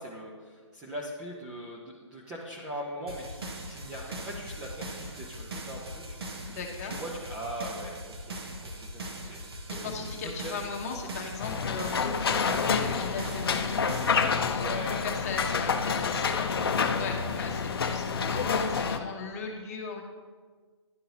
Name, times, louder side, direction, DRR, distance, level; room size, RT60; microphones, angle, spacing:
voice 1, 0.0-3.4 3.7-6.2 6.8-9.9 10.4-10.5 14.5-15.1 15.4-15.5 16.6-16.7, equal, 5° right, -4 dB, 0.3 m, -40 dB
sound 1, 3.1-14.2, right 1 dB, 55° right, 1.0 m, -40 dB
voice 2, 6.5-7.0 9.7-16.6 16.9-20.0, left 4 dB, 30° left, 1 dB, 1.0 m, -38 dB
sound 2, 11.4-19.0, left 5 dB, 50° left, 0.6 m, -28 dB
11.0 x 3.7 x 2.9 m, 1.5 s
figure-of-eight pair, 145°, 15 cm